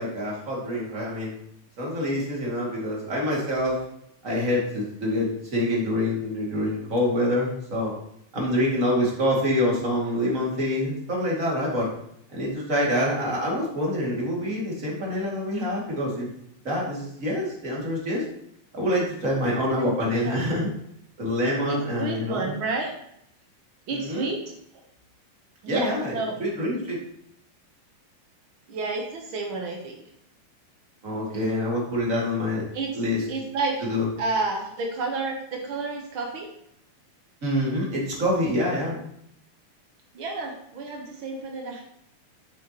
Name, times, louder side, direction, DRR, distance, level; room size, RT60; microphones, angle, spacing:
voice 1, 0.0-1.4 1.8-3.8 4.2-7.9 8.3-11.9 12.3-16.3 16.6-18.2 18.7-20.7 21.2-22.5 23.9-24.3 25.7-27.0 31.0-32.6 32.9-33.2 33.9-34.1 37.4-39.0, left 1 dB, 25° right, -3 dB, 2.2 m, -26 dB
voice 2, 19.8-20.4 21.7-22.9 23.9-24.4 25.6-26.4 28.7-30.1 31.3-31.4 32.7-32.9 33.3-33.9 34.2-36.5 40.1-41.8, right 3 dB, 85° right, 1 dB, 1.1 m, -30 dB
9.3 x 7.7 x 2.9 m, 0.74 s
omnidirectional pair, 3.8 m